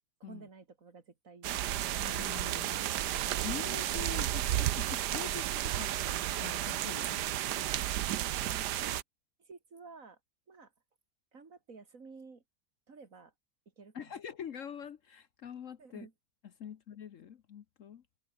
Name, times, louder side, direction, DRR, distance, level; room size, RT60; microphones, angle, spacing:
voice 1, 0.2-1.9 8.4-9.0 9.4-10.2 10.5-10.7 11.3-12.4 12.9-13.3 13.8-14.2 15.8-16.1, right 4 dB, 55° right, 2.8 m, -52 dB
sound 1, 1.4-9.0, right 13 dB, 85° right, 1.4 m, -33 dB
voice 2, 2.0-2.9 3.4-7.2 13.9-16.1 16.6-18.0, left 8 dB, 55° left, 1.2 m, -45 dB
omnidirectional pair, 1.7 m